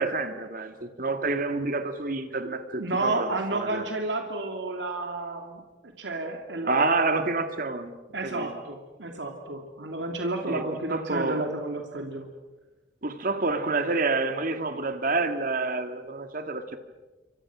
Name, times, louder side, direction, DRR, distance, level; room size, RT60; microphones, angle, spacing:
voice 1, 0.0-3.9 6.6-7.9 8.2-8.5 10.5-11.4 13.0-16.8, right 3 dB, 50° right, 8 dB, 2.0 m, -28 dB
voice 2, 2.8-5.6 6.0-7.1 8.1-12.3, right 2 dB, 85° right, 3 dB, 2.8 m, -31 dB
28.5 x 25.5 x 6.2 m, 1.2 s
head